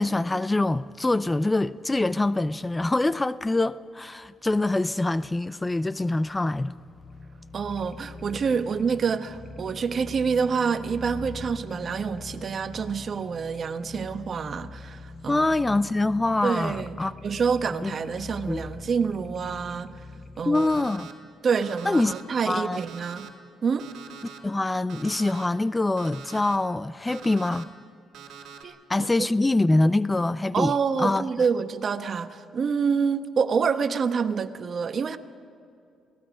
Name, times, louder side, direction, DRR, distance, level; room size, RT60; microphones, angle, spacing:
voice 1, 0.0-6.7 15.3-17.1 17.8-17.9 18.5-18.7 20.5-21.1 21.9-22.1 22.5-22.8 24.4-27.7 28.9-30.7 31.0-31.2, left 2 dB, 15° left, 0.5 m, -24 dB
sound 1, 6.8-20.8, left 3 dB, 35° left, 1.8 m, -43 dB
voice 2, 7.5-15.8 16.4-19.9 20.4-20.9 21.4-23.3 23.6-23.9 28.6-29.3 30.5-35.2, right 6 dB, 50° right, 1.1 m, -27 dB
Alarm, 20.5-21.1 21.6-22.2 22.7-23.3 23.8-24.4 24.9-25.5 26.0-26.6 27.1-27.6 28.1-28.6, right 7 dB, 75° right, 2.3 m, -44 dB
28.0 x 18.0 x 5.1 m
cardioid pair, 90°, 0 cm